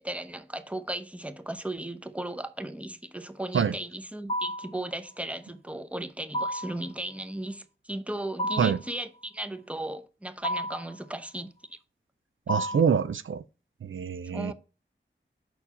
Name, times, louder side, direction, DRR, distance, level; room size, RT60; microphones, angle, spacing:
voice 1, 0.0-11.8 12.7-12.8 14.3-14.5, right 1 dB, 5° right, 0.8 m, -36 dB
sound 1, 4.3-4.8 6.3-6.8 8.4-8.9 10.4-10.9 12.5-13.0, equal, 30° left, 1.0 m, -31 dB
voice 2, 12.5-13.4 13.8-14.5, right 7 dB, 80° right, 0.4 m, -25 dB
5.8 x 4.4 x 4.1 m
wide cardioid pair, 40°, 20 cm